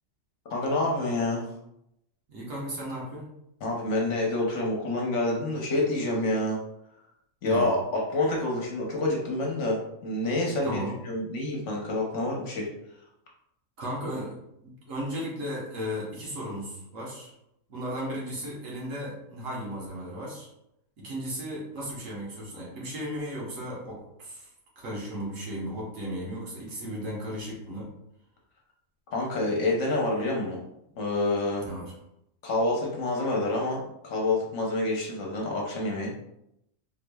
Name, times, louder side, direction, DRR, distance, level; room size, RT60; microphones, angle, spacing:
voice 1, 0.5-1.5 3.6-6.6 7.4-12.7 29.1-30.6 31.0-31.7 32.4-36.1, left 2 dB, 60° left, -1 dB, 1.0 m, -27 dB
voice 2, 2.3-3.3 7.5-7.7 10.6-10.9 13.8-17.3 17.7-20.5 21.0-24.5 24.8-27.9 31.7-31.9, equal, 65° right, -3 dB, 1.4 m, -35 dB
3.8 x 3.1 x 2.2 m, 0.80 s
omnidirectional pair, 1.5 m